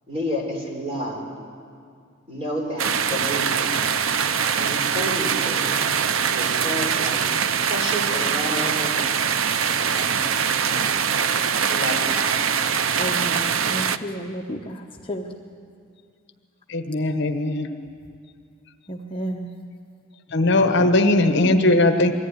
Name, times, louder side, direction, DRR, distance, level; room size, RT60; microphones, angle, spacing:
voice 1, 0.1-1.2 2.3-3.8 4.6-5.7 6.3-7.3 7.6-9.3 9.7-12.4, equal, 30° right, -1 dB, 4.3 m, -31 dB
sound 1, 2.8-14.0, right 7 dB, 75° right, 0.6 m, -23 dB
voice 2, 13.0-14.8 15.1-15.3 18.9-19.5, equal, 25° left, 1 dB, 1.0 m, -31 dB
voice 3, 16.7-17.7 20.3-22.1, left 2 dB, 55° left, 6 dB, 1.1 m, -19 dB
22.0 x 14.5 x 9.7 m, 2.3 s
head